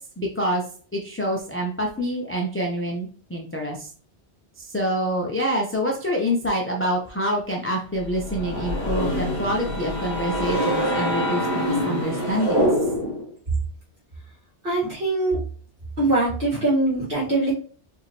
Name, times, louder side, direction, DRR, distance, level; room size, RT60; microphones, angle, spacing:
voice 1, 0.2-0.6 0.9-3.9 4.6-12.7, equal, 15° left, -1 dB, 0.6 m, -26 dB
sound 1, 8.0-13.3, equal, 25° right, 1.8 m, -25 dB
voice 2, 14.6-15.4 16.0-17.5, right 2 dB, 50° right, -7 dB, 2.4 m, -22 dB
4.8 x 2.9 x 3.2 m, 0.43 s
omnidirectional pair, 1.2 m